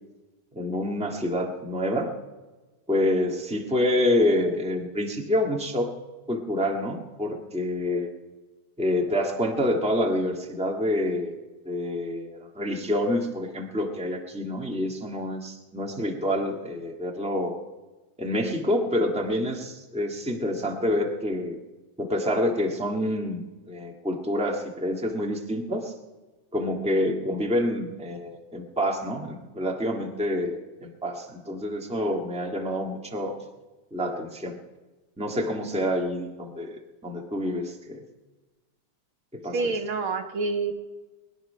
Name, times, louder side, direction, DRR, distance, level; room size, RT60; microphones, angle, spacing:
voice 1, 0.5-2.1 2.9-5.9 6.3-8.1 8.8-11.4 11.6-17.6 18.2-21.6 22.0-25.9 26.5-33.4 33.9-34.6 35.2-38.0 39.3-39.8, left 1 dB, 5° right, 2 dB, 0.6 m, -27 dB
voice 2, 39.5-40.7, right 4 dB, 60° right, 6 dB, 1.6 m, -27 dB
22.5 x 10.5 x 5.5 m, 1.2 s
omnidirectional pair, 3.4 m